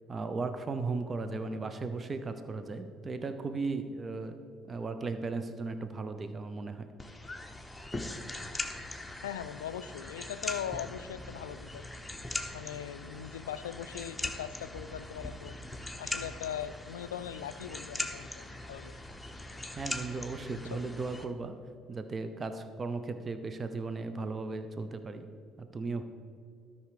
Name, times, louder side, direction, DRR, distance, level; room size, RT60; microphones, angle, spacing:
voice 1, 0.1-4.4 4.7-6.9 19.8-21.6 21.9-25.3 25.6-26.0, right 3 dB, 35° right, 9 dB, 0.7 m, -36 dB
sound 1, 7.0-21.2, left 2 dB, 10° left, 1.0 m, -41 dB
voice 2, 9.2-12.0 12.5-15.6 16.0-19.0 20.7-20.8, left 9 dB, 85° left, 14 dB, 0.3 m, -40 dB
12.5 x 5.6 x 5.0 m, 2.3 s
hypercardioid pair, 60°, 0 cm